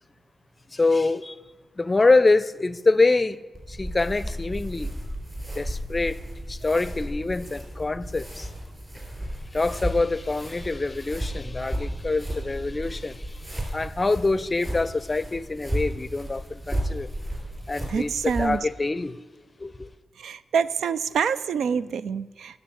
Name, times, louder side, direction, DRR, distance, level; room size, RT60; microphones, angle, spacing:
voice 1, 0.7-1.4 1.8-3.4 3.7-4.9 5.6-6.2 6.5-8.5 9.5-13.2 13.7-17.1 17.7-19.2 19.6-19.9, left 3 dB, 30° left, 0.5 m, -25 dB
sound 1, 3.5-18.6, equal, 20° right, 4.3 m, -34 dB
voice 2, 17.9-18.6 20.2-22.6, right 6 dB, 85° right, 0.4 m, -26 dB
10.0 x 6.6 x 8.5 m
cardioid pair, 60°, 0 cm